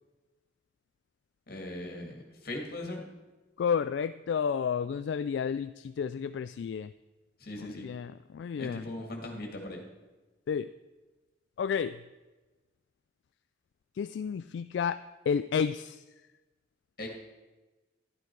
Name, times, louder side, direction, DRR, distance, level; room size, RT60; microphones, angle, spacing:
voice 1, 1.5-3.0 7.4-7.9 8.6-9.8 17.0-17.1, left 1 dB, 55° left, 2 dB, 2.2 m, -39 dB
voice 2, 3.6-6.9 7.6-8.9 10.5-10.7 11.6-12.0 14.0-15.0 15.3-16.0, left 6 dB, 75° left, 12 dB, 0.3 m, -31 dB
11.5 x 11.5 x 4.6 m, 1.2 s
head